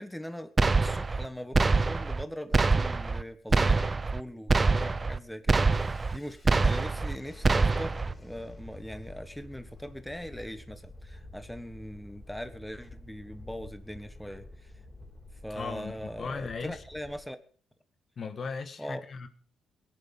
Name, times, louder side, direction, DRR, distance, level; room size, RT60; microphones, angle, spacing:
voice 1, 0.0-14.7 15.4-17.4 18.8-19.0, equal, 5° left, 10 dB, 1.4 m, -41 dB
sound 1, 0.6-1.3 1.5-2.2 2.5-3.2 3.5-4.2 4.5-5.2 5.5-6.2 6.5-7.2 7.4-8.1, right 3 dB, 25° right, 0.8 m, -25 dB
Thunderstorm, 5.7-17.2, left 1 dB, 20° left, 4.4 m, -49 dB
voice 2, 15.5-16.8 18.2-19.3, left 5 dB, 50° left, 9 dB, 1.6 m, -37 dB
17.5 x 11.0 x 5.4 m, 0.42 s
cardioid pair, 90°, 0 cm